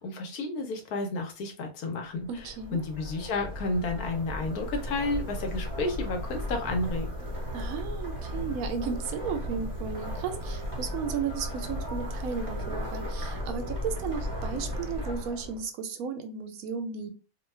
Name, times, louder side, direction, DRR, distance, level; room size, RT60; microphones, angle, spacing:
voice 1, 0.0-7.1, left 2 dB, 80° left, 4 dB, 1.2 m, -31 dB
sound 1, 2.2-15.7, equal, 15° right, 1.0 m, -35 dB
voice 2, 2.3-2.8 7.5-17.1, right 6 dB, 75° right, 7 dB, 1.0 m, -34 dB
2.7 x 2.2 x 3.2 m, 0.33 s
omnidirectional pair, 1.6 m